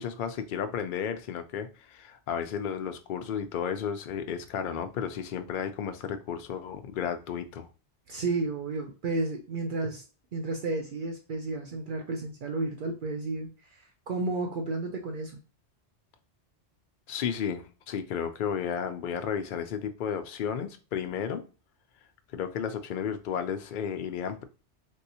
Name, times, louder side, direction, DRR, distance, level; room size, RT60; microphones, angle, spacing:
voice 1, 0.0-7.7 17.1-21.4 22.3-24.4, left 7 dB, 60° left, 0.5 m, -33 dB
voice 2, 8.1-10.1 10.3-15.4, right 3 dB, 60° right, 0.6 m, -32 dB
3.3 x 2.7 x 2.7 m
omnidirectional pair, 1.2 m